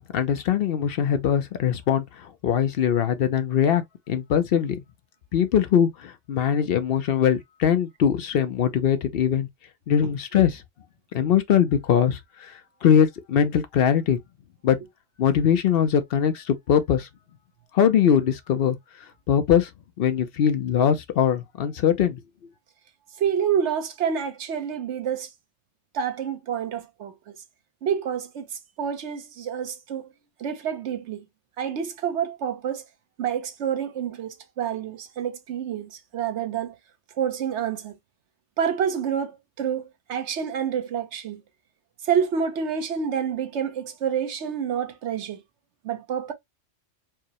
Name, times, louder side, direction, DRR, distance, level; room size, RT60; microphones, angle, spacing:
voice 1, 0.1-2.0 2.4-4.8 5.3-9.5 9.9-10.6 11.1-12.5 12.8-14.2 14.6-14.8 15.2-17.1 17.7-18.8 19.3-19.7 20.0-22.2, left 8 dB, 60° left, 0.7 m, -21 dB
voice 2, 23.2-25.3 25.9-27.1 27.8-30.1 30.4-31.2 31.6-32.8 33.2-36.7 37.2-37.9 38.6-41.4 42.0-45.4 45.8-46.3, right 8 dB, 65° right, 1.1 m, -28 dB
4.6 x 2.0 x 2.9 m
omnidirectional pair, 1.3 m